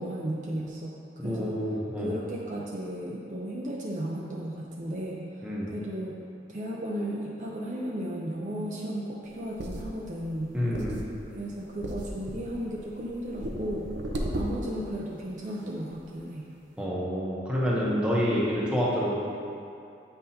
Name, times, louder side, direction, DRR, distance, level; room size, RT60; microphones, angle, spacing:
voice 1, 0.0-1.6 2.0-6.2 6.5-10.5 11.3-13.9 14.3-16.5, right 1 dB, 45° right, -3 dB, 0.5 m, -35 dB
voice 2, 1.2-2.1 5.4-5.7 10.5-11.0 16.8-19.2, equal, 5° right, -7 dB, 0.9 m, -28 dB
sound 1, 9.3-15.0 15.5-15.6 15.9-16.0, equal, 85° right, 0.7 m, -36 dB
7.9 x 5.5 x 2.8 m, 2.6 s
head